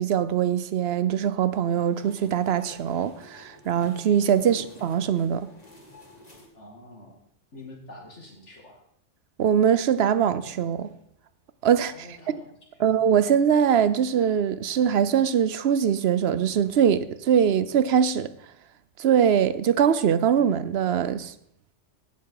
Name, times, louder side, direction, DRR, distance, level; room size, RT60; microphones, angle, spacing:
voice 1, 0.0-5.5 9.4-10.9 11.6-12.1 12.8-18.3 19.0-21.3, right 8 dB, 65° right, 0.9 m, -22 dB
sound 1, 1.5-6.5, left 1 dB, 35° left, 2.2 m, -50 dB
voice 2, 6.5-7.2 7.5-8.8 11.9-13.0, left 2 dB, 80° left, 2.5 m, -46 dB
17.5 x 6.7 x 4.8 m
omnidirectional pair, 1.2 m